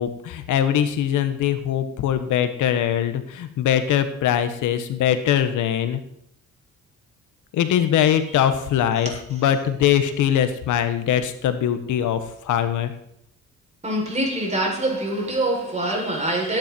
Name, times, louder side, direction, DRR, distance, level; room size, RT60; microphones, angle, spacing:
voice 1, 0.0-6.0 7.5-12.9, left 10 dB, 85° left, 1.4 m, -22 dB
voice 2, 13.8-16.6, right 1 dB, 20° right, 7.3 m, -24 dB
17.5 x 10.5 x 4.6 m
cardioid pair, 90°, 30 cm